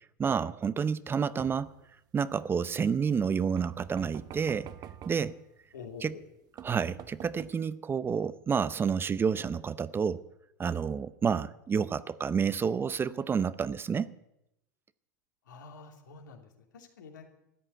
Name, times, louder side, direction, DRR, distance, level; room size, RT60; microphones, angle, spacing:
voice 1, 0.2-1.7 2.1-4.7 5.1-5.3 6.0-6.1 6.6-10.2 10.6-14.1, right 6 dB, 20° right, 0.6 m, -29 dB
sound 1, 1.4-1.9 3.6-5.3 6.1-6.2 6.6-7.5, right 10 dB, 40° right, 1.0 m, -46 dB
voice 2, 5.7-6.2 15.5-17.2, left 5 dB, 85° left, 3.0 m, -47 dB
14.0 x 9.9 x 9.4 m
hypercardioid pair, 100°, 10 cm